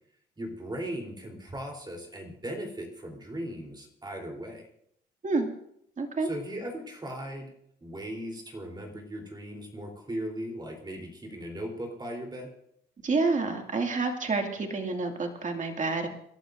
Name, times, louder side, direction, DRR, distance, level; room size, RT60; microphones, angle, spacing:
voice 1, 0.4-4.7 6.2-7.5 7.8-12.5, right 1 dB, 20° right, 1 dB, 3.6 m, -38 dB
voice 2, 6.0-6.3 13.0-16.1, right 3 dB, 40° right, 3 dB, 2.3 m, -28 dB
27.5 x 12.0 x 2.6 m, 0.71 s
cardioid pair, 90°, 20 cm